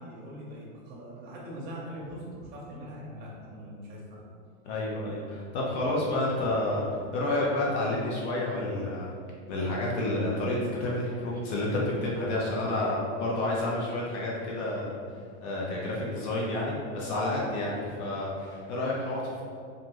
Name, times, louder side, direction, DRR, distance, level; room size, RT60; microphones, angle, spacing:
voice 1, 0.0-4.2, equal, 25° right, -5 dB, 0.6 m, -42 dB
voice 2, 4.6-9.1 9.5-14.9 15.4-19.4, left 1 dB, 55° left, -4 dB, 0.7 m, -30 dB
2.6 x 2.5 x 3.0 m, 2.2 s
supercardioid pair, 155°, 40 cm